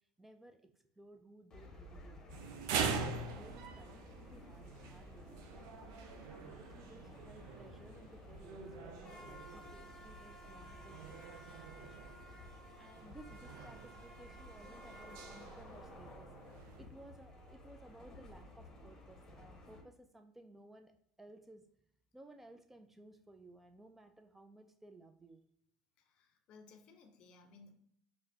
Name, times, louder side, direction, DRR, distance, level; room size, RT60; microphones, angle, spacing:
voice 1, 0.2-2.3 2.8-11.4 11.8-12.1 12.8-16.3 16.8-20.9 21.2-21.6 22.1-25.4, right 1 dB, 10° right, 7 dB, 0.4 m, -58 dB
sound 1, 1.5-19.8, left 1 dB, 30° left, 0.9 m, -54 dB
sound 2, 2.3-16.9, right 5 dB, 70° right, 0.4 m, -44 dB
voice 2, 26.0-27.7, left 4 dB, 55° left, 7 dB, 0.6 m, -60 dB
4.8 x 2.1 x 2.8 m, 0.69 s
hypercardioid pair, 75°, 2 cm